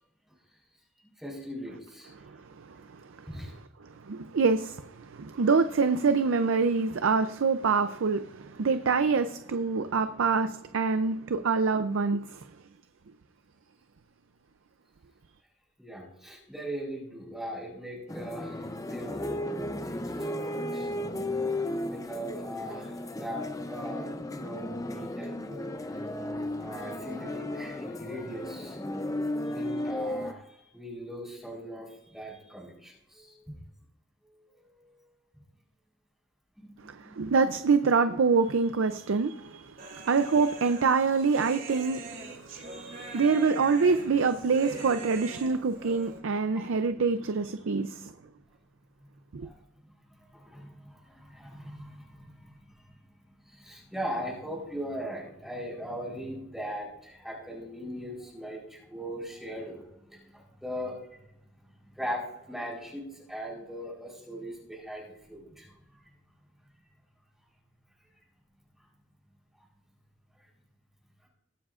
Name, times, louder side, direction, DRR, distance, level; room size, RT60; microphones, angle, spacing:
voice 1, 1.2-2.1 3.3-3.5 15.8-20.9 21.9-25.9 26.6-28.8 29.4-33.6 34.2-34.9 36.6-37.1 42.5-43.5 49.4-49.6 50.1-52.6 53.4-59.8 60.1-61.2 61.9-65.7, equal, ahead, 3.9 m, -40 dB
voice 2, 2.3-2.6 2.9-3.3 4.0-12.4 36.9-48.1 49.3-49.5, right 4 dB, 80° right, 0.5 m, -26 dB
sound 1, 18.1-30.3, left 1 dB, 15° left, 0.6 m, -34 dB
Human voice, 39.8-46.2, right 3 dB, 50° right, 2.7 m, -42 dB
21.5 x 7.3 x 2.5 m
head